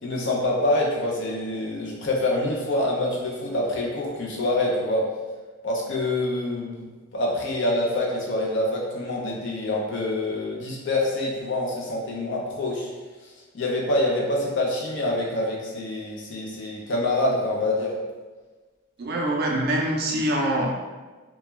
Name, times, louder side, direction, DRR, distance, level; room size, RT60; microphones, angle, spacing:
voice 1, 0.0-5.1 5.6-6.8 7.1-12.9 13.5-17.9, left 1 dB, 60° left, -3 dB, 0.6 m, -26 dB
voice 2, 19.0-20.7, right 1 dB, 50° right, -1 dB, 0.4 m, -24 dB
2.2 x 2.2 x 3.0 m, 1.3 s
head